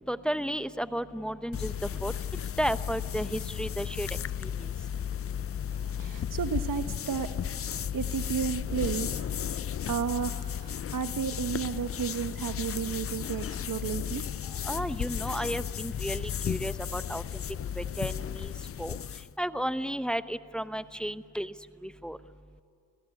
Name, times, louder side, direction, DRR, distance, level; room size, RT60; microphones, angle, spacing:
voice 1, 0.1-1.7 2.0-2.1 2.6-4.1 4.4-4.7 14.6-17.2 17.8-18.5 18.8-19.0 19.4-21.5 21.8-22.2, equal, ahead, 12 dB, 0.9 m, -33 dB
sound 1, 1.5-19.3, left 9 dB, 45° left, 0.5 m, -34 dB
voice 2, 5.7-7.3 7.9-9.1 9.9-14.2, right 7 dB, 70° right, 9 dB, 1.1 m, -32 dB
26.5 x 18.0 x 9.7 m, 2.6 s
cardioid pair, 65°, 34 cm